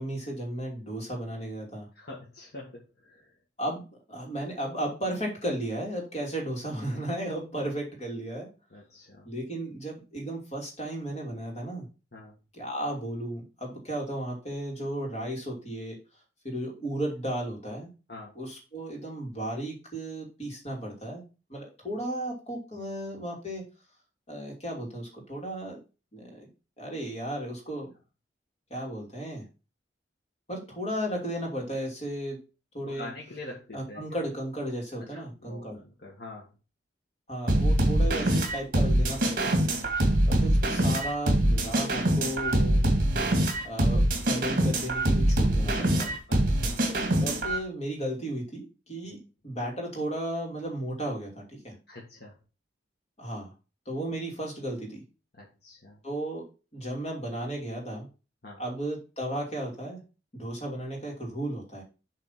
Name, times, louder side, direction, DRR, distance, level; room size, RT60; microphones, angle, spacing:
voice 1, 0.0-1.9 3.6-3.8 4.1-8.5 9.2-11.9 12.5-16.0 16.4-17.9 18.3-21.2 21.5-23.6 24.3-25.8 26.1-26.5 26.8-27.9 28.7-29.4 30.5-32.4 32.7-33.1 33.7-35.8 37.3-39.6 40.3-42.8 43.6-46.2 47.2-51.8 53.2-53.5 53.9-55.0 56.0-56.4 56.7-58.1 58.6-60.0 60.3-61.8, right 1 dB, 35° left, 0 dB, 2.9 m, -34 dB
voice 2, 2.0-3.3 8.7-9.3 12.1-12.3 18.1-18.3 32.9-34.0 35.1-36.5 39.8-40.2 46.3-46.8 49.0-49.2 51.9-52.4 55.4-56.0 58.4-58.6, left 2 dB, 55° left, -4 dB, 1.9 m, -45 dB
sound 1, 37.5-47.6, right 1 dB, 50° right, 2.1 m, -24 dB
7.8 x 4.1 x 5.8 m, 0.31 s
head